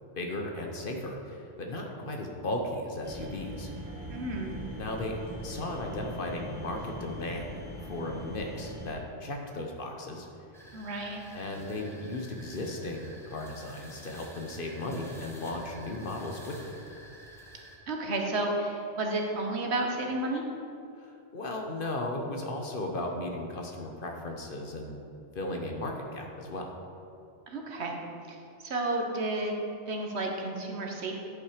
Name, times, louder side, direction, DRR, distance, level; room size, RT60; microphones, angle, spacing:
voice 1, 0.2-3.7 4.7-7.5 7.8-10.3 11.3-16.7 21.0-25.0 25.3-26.7, left 1 dB, 50° left, 2 dB, 1.0 m, -36 dB
sound 1, 3.0-8.9, equal, 15° right, 1.9 m, -41 dB
voice 2, 4.1-4.6 10.7-11.2 17.9-20.4 27.5-28.0 28.3-29.6 29.9-31.2, right 2 dB, 65° right, 2 dB, 1.3 m, -32 dB
sound 2, 10.5-17.8, equal, ahead, 1.0 m, -50 dB
10.5 x 5.6 x 5.0 m, 2.6 s
omnidirectional pair, 1.2 m